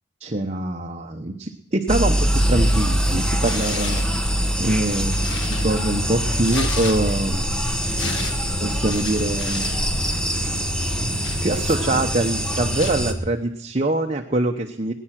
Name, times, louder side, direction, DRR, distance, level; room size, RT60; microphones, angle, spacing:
voice 1, 0.2-4.1 4.6-7.5 8.6-9.7 10.9-14.9, right 2 dB, 35° right, 3 dB, 1.0 m, -24 dB
sound 1, 1.9-13.1, equal, 5° left, 1.3 m, -23 dB
Tearing, 3.4-4.2 4.7-7.3 7.6-9.8 10.1-10.3 10.8-12.0 12.8-13.0, left 4 dB, 85° left, 1.9 m, -34 dB
20.5 x 10.0 x 6.0 m, 0.78 s
head